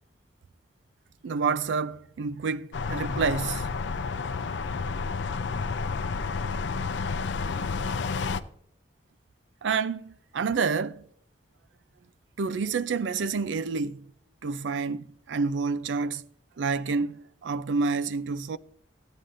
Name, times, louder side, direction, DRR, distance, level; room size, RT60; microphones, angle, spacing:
voice 1, 1.2-3.7 9.6-11.0 12.4-14.0 14.4-16.2 16.6-18.6, right 5 dB, 85° right, 0.4 m, -28 dB
sound 1, 2.7-8.4, left 4 dB, 70° left, 0.5 m, -30 dB
15.0 x 9.3 x 2.5 m
head